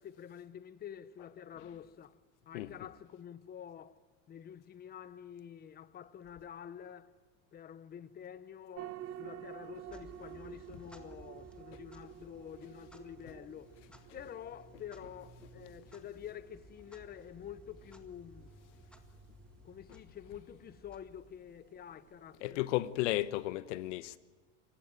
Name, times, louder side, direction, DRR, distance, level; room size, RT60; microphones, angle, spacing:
voice 1, 0.0-2.1 2.5-4.0 4.3-7.1 7.5-13.7 14.1-18.6 19.6-22.6, left 9 dB, 25° left, 1.1 m, -48 dB
sound 1, 8.7-23.6, right 12 dB, 40° right, 1.0 m, -52 dB
Clock, 9.7-21.7, equal, 5° left, 1.8 m, -59 dB
voice 2, 22.4-24.2, left 16 dB, 80° left, 1.2 m, -34 dB
27.0 x 16.0 x 9.1 m
supercardioid pair, 140°, 35 cm